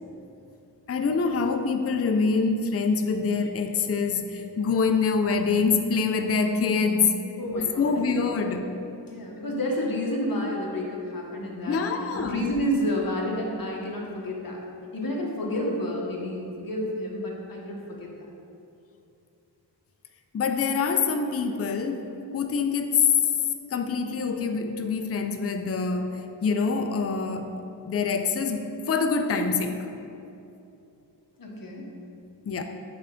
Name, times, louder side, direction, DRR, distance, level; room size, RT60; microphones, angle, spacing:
voice 1, 0.9-7.2 7.8-8.7 11.7-12.4 20.3-23.1 23.7-29.8 32.5-32.6, left 5 dB, 35° left, 6 dB, 0.4 m, -25 dB
voice 2, 7.4-8.0 8.4-8.5 9.1-11.8 12.1-14.6 14.9-18.1 31.4-31.8, equal, 50° left, -2 dB, 1.1 m, -30 dB
5.9 x 3.3 x 5.1 m, 2.7 s
wide cardioid pair, 60°, 43 cm